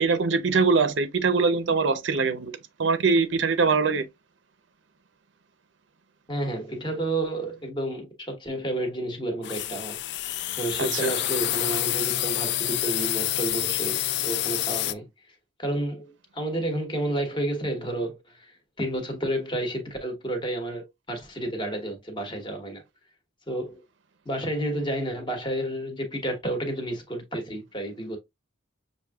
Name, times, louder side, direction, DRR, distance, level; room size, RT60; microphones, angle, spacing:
voice 1, 0.0-4.1 10.8-11.1, right 4 dB, 70° right, 0.6 m, -23 dB
voice 2, 6.3-10.0 10.6-15.1 15.6-18.5 18.8-22.8 23.5-23.8 24.2-28.2, right 1 dB, 25° left, 1.1 m, -31 dB
sound 1, 9.4-14.9, left 14 dB, 60° left, 0.3 m, -28 dB
6.4 x 2.6 x 2.3 m
head